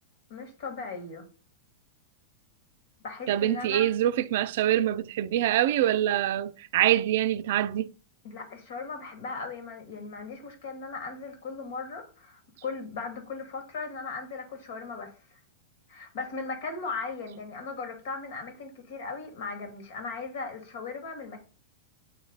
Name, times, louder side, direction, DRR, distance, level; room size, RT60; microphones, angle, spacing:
voice 1, 0.3-1.3 3.0-3.9 8.2-15.4 15.9-21.4, left 4 dB, 65° left, 2.2 m, -38 dB
voice 2, 3.3-7.9, right 12 dB, 65° right, 0.4 m, -25 dB
8.0 x 3.2 x 4.0 m
hypercardioid pair, 115°, 0 cm